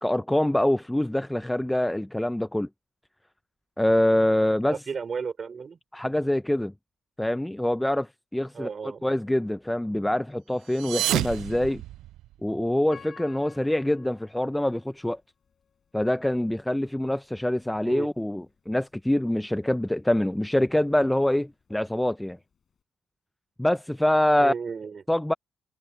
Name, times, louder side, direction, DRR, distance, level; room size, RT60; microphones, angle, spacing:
voice 1, 0.0-2.7 3.8-4.8 5.9-6.7 7.2-11.8 12.4-15.2 15.9-22.4 23.6-24.5 25.1-25.3, left 1 dB, 5° left, 0.7 m, -25 dB
voice 2, 4.7-5.8 8.5-9.1 17.8-18.1 24.4-25.0, right 5 dB, 40° right, 5.0 m, -33 dB
sound 1, 10.6-12.5, right 13 dB, 85° right, 0.5 m, -30 dB
Piano, 12.9-15.9 16.5-16.6 17.2-17.5, left 6 dB, 50° left, 7.9 m, -51 dB
cardioid pair, 90°, 0 cm